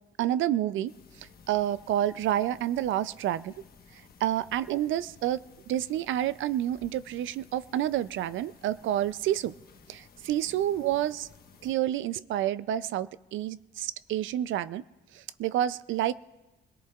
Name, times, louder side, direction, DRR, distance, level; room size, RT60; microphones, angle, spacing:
voice 1, 0.2-0.9 1.2-3.5 4.2-5.4 5.7-9.5 9.9-11.3 11.6-14.8 15.1-16.1, right 12 dB, 75° right, 16 dB, 0.4 m, -29 dB
sound 1, 0.9-11.7, left 6 dB, 50° left, 1.1 m, -56 dB
25.5 x 18.0 x 2.4 m, 1.1 s
cardioid pair, 90°, 20 cm